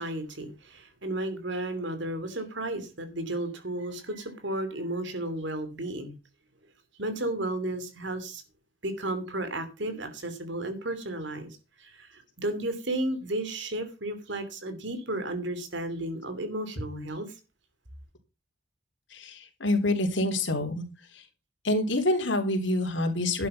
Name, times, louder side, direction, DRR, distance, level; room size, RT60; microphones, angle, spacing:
voice 1, 0.0-6.2 7.0-8.4 8.8-11.5 11.8-17.3, right 1 dB, 65° right, 9 dB, 2.9 m, -33 dB
voice 2, 19.1-20.8 21.6-23.5, left 1 dB, 70° left, 4 dB, 3.8 m, -26 dB
12.0 x 8.5 x 5.7 m, 0.30 s
head